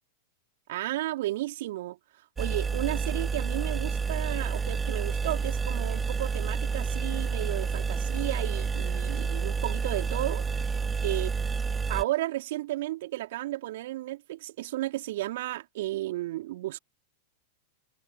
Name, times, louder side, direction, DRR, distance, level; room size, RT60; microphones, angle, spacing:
voice 1, 0.7-2.0 2.4-10.4 11.0-11.3 11.9-16.8, right 16 dB, 60° right, 3.6 m, -33 dB
sound 1, 2.4-12.0, right 5 dB, 15° right, 1.2 m, -29 dB
figure-of-eight pair, 95°, 0 cm